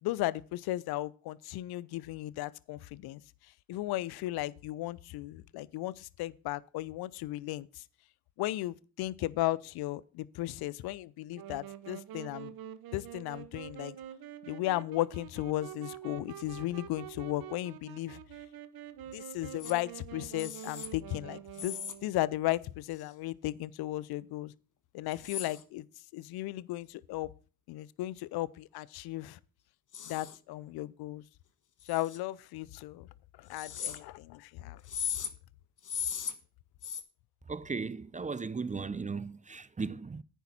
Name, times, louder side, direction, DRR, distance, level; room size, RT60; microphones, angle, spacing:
voice 1, 0.0-3.2 3.7-7.8 8.4-12.5 12.9-14.0 14.5-18.2 19.1-24.5 24.9-25.8 26.1-27.3 27.7-29.4 30.1-31.2 31.9-33.1 33.4-34.8, left 16 dB, 65° left, 0.7 m, -35 dB
Wind instrument woodwind instrument, 11.3-22.2, right 10 dB, 55° right, 1.0 m, -46 dB
sound 1, 19.6-19.7 20.4-20.9 21.5-21.9 22.9-23.1 25.1-25.6 29.9-30.4 31.8-32.2 33.5-34.0 34.8-35.3 35.8-36.3 36.8-37.0, left 8 dB, 45° left, 1.5 m, -37 dB
voice 2, 37.5-40.2, right 4 dB, 20° right, 0.6 m, -36 dB
10.0 x 9.3 x 4.3 m
hypercardioid pair, 45°, 42 cm